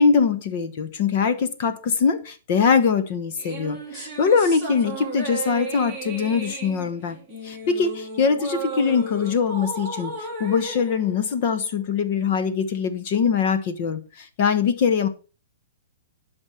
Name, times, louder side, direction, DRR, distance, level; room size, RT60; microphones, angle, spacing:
voice 1, 0.0-7.2 7.4-15.1, left 6 dB, 30° left, 1.1 m, -22 dB
sound 1, 3.4-12.0, right 3 dB, 5° left, 2.2 m, -35 dB
11.5 x 5.3 x 5.7 m
hypercardioid pair, 175°, 0 cm